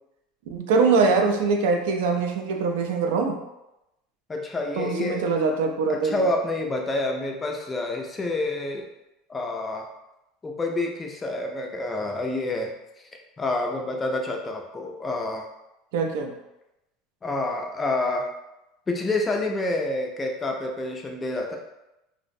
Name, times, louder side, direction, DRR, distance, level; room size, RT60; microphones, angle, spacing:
voice 1, 0.5-3.4 4.8-6.2 15.9-16.3, right 4 dB, 85° right, 3 dB, 0.3 m, -23 dB
voice 2, 4.3-5.3 5.9-8.9 9.3-9.9 10.4-12.7 13.4-15.4 17.2-18.3 18.9-21.6, left 2 dB, 15° left, 2 dB, 0.3 m, -28 dB
2.5 x 2.0 x 2.5 m, 0.92 s
supercardioid pair, 155°, 0 cm